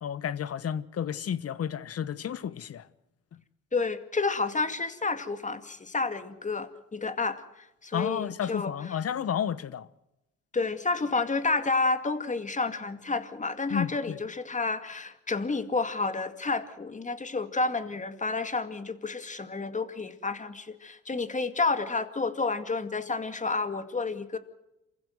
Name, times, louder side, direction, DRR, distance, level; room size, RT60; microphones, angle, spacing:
voice 1, 0.0-2.8 7.9-9.9 13.7-14.2, left 8 dB, 55° left, 1.2 m, -31 dB
voice 2, 3.7-9.0 10.5-24.4, left 3 dB, 25° left, 2.2 m, -30 dB
27.5 x 15.5 x 7.9 m
cardioid pair, 90°, 30 cm